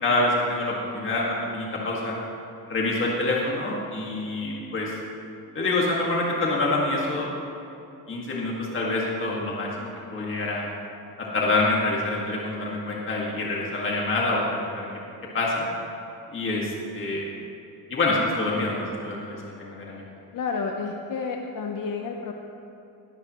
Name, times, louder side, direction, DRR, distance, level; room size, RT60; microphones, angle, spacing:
voice 1, 0.0-2.1 2.7-4.9 5.5-7.3 8.1-10.7 11.2-14.9 15.3-15.7 16.3-17.2 17.9-20.0, left 2 dB, 35° left, -4 dB, 2.0 m, -26 dB
voice 2, 20.3-22.3, left 5 dB, 60° left, 2 dB, 1.0 m, -30 dB
20.0 x 14.0 x 3.1 m, 2.9 s
cardioid pair, 155°, 36 cm